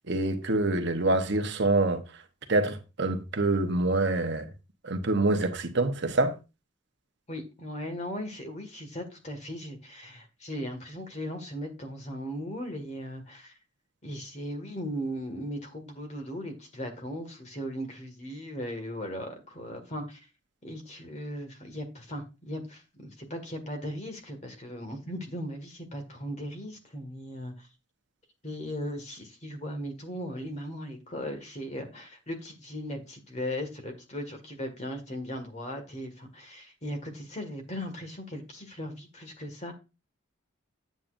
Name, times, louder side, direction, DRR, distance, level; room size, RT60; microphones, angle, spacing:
voice 1, 0.1-2.0 2.5-4.5 4.8-6.4, right 2 dB, 60° right, 1.1 m, -26 dB
voice 2, 7.3-13.5 14.0-20.3 20.6-27.7 28.4-39.7, equal, 35° left, 2.0 m, -38 dB
8.8 x 8.4 x 2.6 m
head